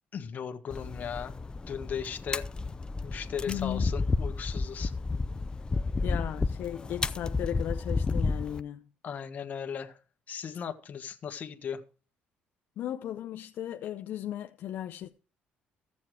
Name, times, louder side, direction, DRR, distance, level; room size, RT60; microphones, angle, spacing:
voice 1, 0.1-1.4 1.7-2.5 3.0-4.9 9.0-10.0 10.3-11.8, left 7 dB, 50° left, 1.5 m, -37 dB
sound 1, 0.7-8.6, left 3 dB, 25° left, 0.6 m, -31 dB
voice 2, 3.5-3.9 6.0-8.8 12.8-15.1, left 11 dB, 70° left, 0.7 m, -36 dB
15.0 x 7.2 x 4.7 m
cardioid pair, 100°, 4 cm